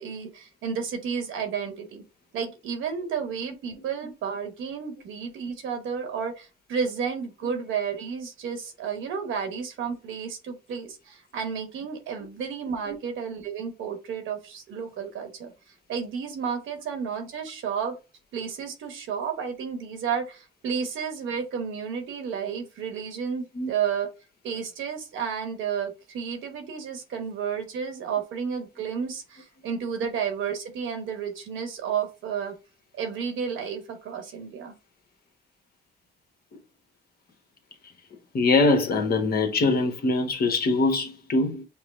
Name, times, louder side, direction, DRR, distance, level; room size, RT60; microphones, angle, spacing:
voice 1, 0.0-2.0 2.3-15.5 15.9-17.9 18.3-24.1 24.4-32.5 32.9-34.7, right 6 dB, 80° right, 1.1 m, -32 dB
voice 2, 38.3-41.7, left 3 dB, 50° left, 1.1 m, -23 dB
5.7 x 2.0 x 3.1 m
cardioid pair, 90°, 20 cm